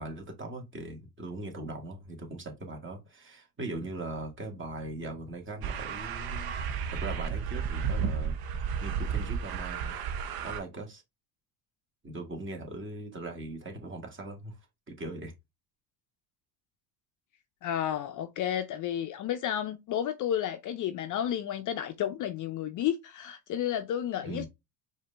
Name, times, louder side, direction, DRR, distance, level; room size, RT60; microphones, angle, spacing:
voice 1, 0.0-6.5 6.9-8.4 8.8-10.0 10.4-11.0 12.0-14.6 14.9-15.3 24.2-24.5, right 2 dB, 25° right, 1.8 m, -40 dB
sound 1, 5.6-10.6, right 7 dB, 50° right, 0.9 m, -32 dB
voice 2, 17.6-24.5, left 10 dB, 40° left, 0.6 m, -32 dB
4.8 x 2.8 x 3.3 m
supercardioid pair, 90°, 47 cm